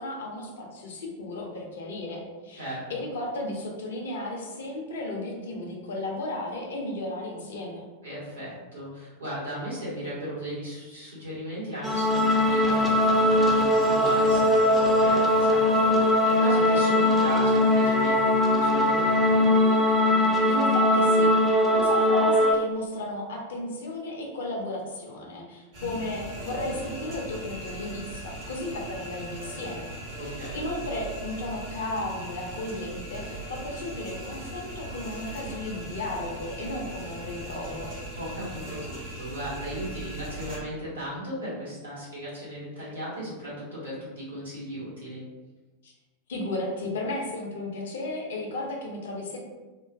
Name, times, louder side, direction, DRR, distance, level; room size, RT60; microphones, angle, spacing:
voice 1, 0.0-7.9 20.5-29.9 30.2-37.9 45.8-45.9 46.3-49.4, left 2 dB, 60° left, 0 dB, 0.5 m, -34 dB
voice 2, 2.5-3.0 8.0-19.5 25.7-25.9 30.2-30.6 38.1-45.2, equal, 75° right, -8 dB, 1.4 m, -36 dB
sound 1, 11.8-22.6, left 1 dB, ahead, 0.4 m, -21 dB
sound 2, 25.7-40.6, right 1 dB, 45° right, 0.8 m, -39 dB
2.9 x 2.1 x 2.5 m, 1.2 s
figure-of-eight pair, 90°, 0 cm